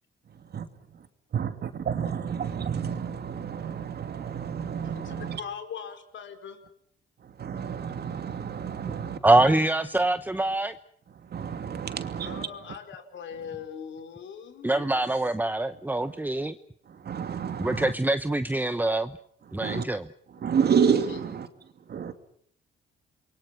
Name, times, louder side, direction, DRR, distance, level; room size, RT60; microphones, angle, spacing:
voice 1, 0.3-0.7 0.9-1.1 1.3-5.4 7.2-9.5 11.1-12.8 16.0-16.2 16.9-17.9 19.5-19.9 20.3-22.1, right 7 dB, 55° right, 8 dB, 2.7 m, -30 dB
voice 2, 5.0-6.6 12.2-14.9, left 7 dB, 70° left, 6 dB, 4.7 m, -40 dB
voice 3, 9.2-10.7 14.6-16.5 17.6-19.1 19.5-20.0, right 2 dB, 10° right, 11 dB, 1.0 m, -24 dB
28.5 x 23.0 x 6.0 m, 0.67 s
cardioid pair, 90°, 20 cm